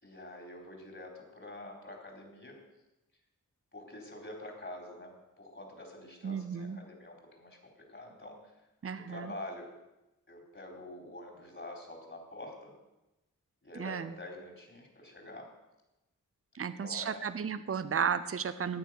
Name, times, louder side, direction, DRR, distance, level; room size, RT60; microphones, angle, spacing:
voice 1, 0.0-2.5 3.7-7.6 7.9-8.5 8.9-9.7 10.3-12.8 13.6-15.5 16.6-17.3, left 1 dB, 35° left, 1 dB, 4.3 m, -46 dB
voice 2, 6.2-6.8 8.8-9.3 13.8-14.1 16.5-18.8, right 7 dB, 40° right, 13 dB, 0.7 m, -34 dB
13.5 x 9.4 x 6.6 m, 0.97 s
cardioid pair, 60°, 33 cm